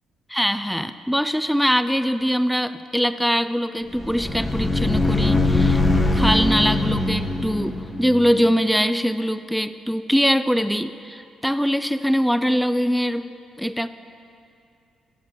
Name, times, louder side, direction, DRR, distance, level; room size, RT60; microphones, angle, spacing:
voice 1, 0.3-5.8 6.1-13.3 13.6-13.9, equal, ahead, 12 dB, 0.3 m, -22 dB
sound 1, 3.9-8.6, left 2 dB, 15° left, 0.8 m, -22 dB
13.0 x 8.0 x 3.0 m, 2.6 s
cardioid pair, 90°, 0 cm